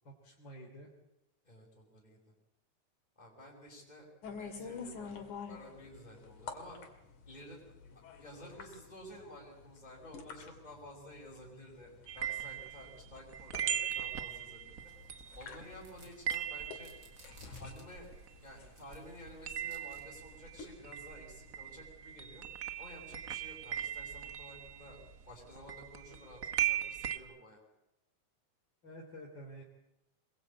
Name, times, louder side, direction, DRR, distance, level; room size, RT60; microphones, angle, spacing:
voice 1, 0.0-0.9 28.8-29.6, equal, 35° left, -1 dB, 3.9 m, -49 dB
voice 2, 1.4-2.2 3.2-4.1 4.4-5.1 5.5-6.8 7.3-7.7 8.2-14.8 15.3-16.9 17.6-18.1 18.4-22.4 22.8-27.6, left 1 dB, 15° left, -3 dB, 5.8 m, -52 dB
sound 1, 4.2-21.8, left 5 dB, 75° left, 4.0 m, -50 dB
sound 2, 12.1-18.7 18.9-27.2, right 9 dB, 85° right, 0.7 m, -39 dB
sound 3, 14.8-20.0, right 2 dB, 30° right, 5.6 m, -63 dB
25.0 x 22.5 x 8.6 m, 0.90 s
omnidirectional pair, 3.5 m